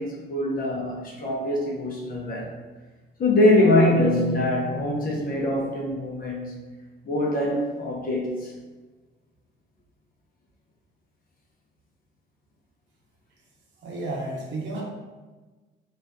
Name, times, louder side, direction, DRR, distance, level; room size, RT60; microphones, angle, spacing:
voice 1, 0.0-2.6 3.2-6.5 7.0-8.5, left 1 dB, 45° left, -2 dB, 0.7 m, -23 dB
voice 2, 13.8-14.8, right 2 dB, 65° right, -2 dB, 0.7 m, -32 dB
2.5 x 2.3 x 2.2 m, 1.2 s
cardioid pair, 90°, 20 cm